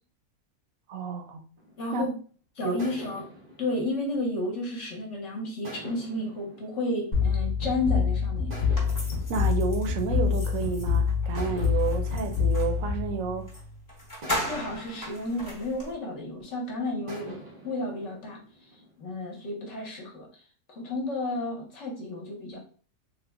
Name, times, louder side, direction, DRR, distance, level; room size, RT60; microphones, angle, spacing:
voice 1, 0.9-1.4 1.9-2.0 2.6-2.8 9.3-13.5, right 6 dB, 70° right, 0.9 m, -30 dB
sound 1, 1.6-2.2 2.8-5.0 5.6-7.8 8.5-10.8 11.4-13.6 14.2-16.5 17.1-19.3, equal, 55° right, 0.5 m, -47 dB
voice 2, 1.8-2.1 2.6-3.3 3.6-8.5 14.4-17.4 17.6-18.4 19.0-20.3 20.7-22.6, left 2 dB, 60° left, 1.1 m, -32 dB
sound 2, 7.1-13.7, left 6 dB, 40° left, 0.7 m, -26 dB
sound 3, 8.7-12.8 13.5-13.6 13.9-15.9, left 1 dB, 15° left, 0.9 m, -37 dB
3.3 x 2.0 x 3.4 m
omnidirectional pair, 1.6 m